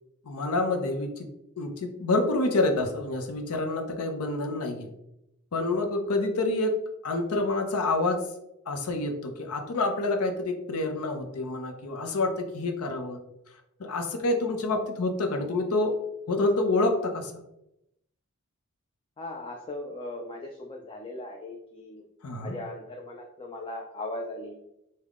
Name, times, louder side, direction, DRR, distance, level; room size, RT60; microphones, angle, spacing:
voice 1, 0.3-1.3 1.6-4.9 5.5-8.2 8.7-13.2 13.8-15.9 16.3-17.3 22.2-22.6, left 2 dB, 85° left, 5 dB, 0.6 m, -27 dB
voice 2, 19.2-22.0 22.4-24.6, left 2 dB, 25° left, 1 dB, 0.3 m, -38 dB
3.6 x 2.2 x 3.5 m, 0.86 s
head